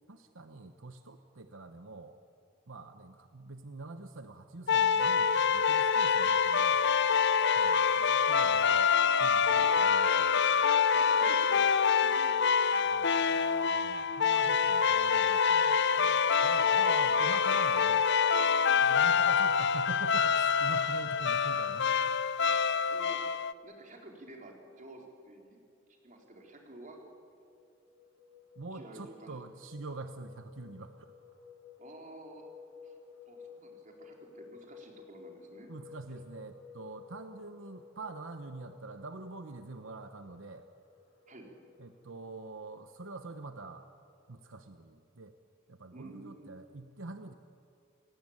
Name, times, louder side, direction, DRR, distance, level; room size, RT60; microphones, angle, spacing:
voice 1, 0.1-2.2 2.7-6.8 7.5-10.3 12.8-18.1 18.8-22.1 28.6-31.1 35.7-40.7 41.8-43.9 44.3-45.3 45.7-47.3, right 3 dB, 85° right, 8 dB, 1.0 m, -45 dB
sound 1, 4.7-23.5, left 6 dB, 60° left, 0.6 m, -26 dB
voice 2, 10.9-11.6 12.0-12.4 16.6-16.8 22.9-23.2 23.6-25.6 26.0-27.0 28.7-29.4 31.8-32.5 32.8-32.9 33.3-35.7 41.3-41.5 45.9-46.5, right 1 dB, 40° right, 1 dB, 4.0 m, -51 dB
sound 2, 26.1-43.9, left 5 dB, 85° left, 7.6 m, -55 dB
28.0 x 17.5 x 8.8 m, 2.5 s
head